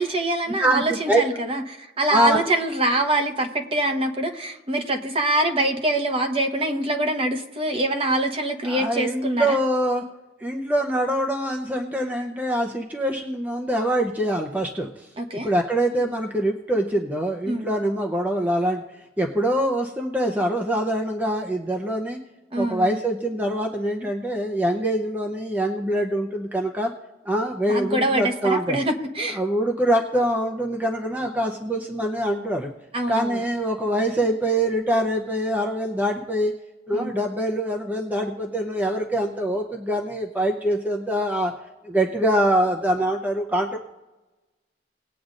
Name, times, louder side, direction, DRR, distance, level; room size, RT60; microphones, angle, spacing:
voice 1, 0.0-9.6 15.2-15.5 17.5-17.7 22.5-23.0 27.7-29.4 32.9-33.4 36.9-37.1, right 1 dB, 35° right, 5 dB, 1.0 m, -24 dB
voice 2, 0.6-1.2 2.1-2.4 8.6-10.0 10.4-18.8 19.2-22.2 22.5-26.9 27.3-28.8 29.4-32.7 33.1-36.5 36.9-41.5 41.8-43.8, right 1 dB, 10° right, 1 dB, 0.7 m, -24 dB
19.5 x 8.5 x 2.6 m, 1.1 s
head